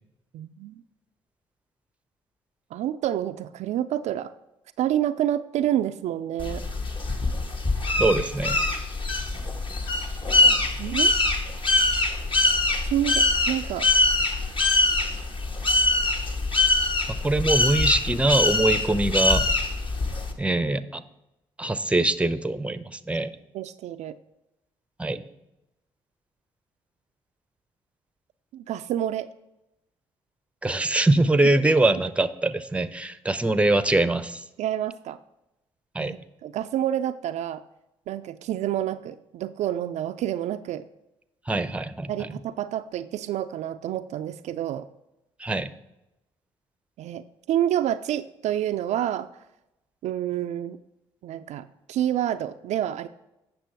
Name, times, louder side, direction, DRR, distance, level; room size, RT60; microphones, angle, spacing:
voice 1, 0.3-0.8 2.7-4.3 4.8-6.6 10.8-11.2 12.8-13.9 23.5-24.1 28.5-29.3 34.6-35.2 36.0-37.6 38.1-40.8 42.1-44.9 47.0-49.3 50.0-50.8 51.2-53.1, right 11 dB, 60° right, 9 dB, 0.4 m, -28 dB
sound 1, 6.4-20.3, left 2 dB, 40° left, 1.4 m, -23 dB
voice 2, 8.0-8.6 17.2-19.4 20.4-21.0 21.6-23.3 25.0-25.2 30.6-34.4 35.9-36.2 41.5-42.3 45.4-45.7, right 2 dB, 10° right, 14 dB, 0.7 m, -23 dB
8.7 x 6.2 x 4.6 m, 0.92 s
hypercardioid pair, 50°, 13 cm